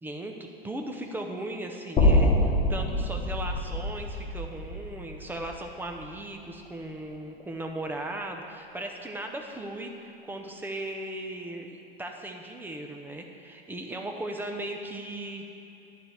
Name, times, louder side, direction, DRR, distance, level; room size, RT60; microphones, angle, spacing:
voice 1, 0.0-15.5, right 1 dB, 5° right, 3 dB, 0.9 m, -37 dB
sound 1, 2.0-6.1, left 1 dB, 20° left, 1.8 m, -25 dB
10.5 x 4.5 x 7.9 m, 2.7 s
hypercardioid pair, 105°, 31 cm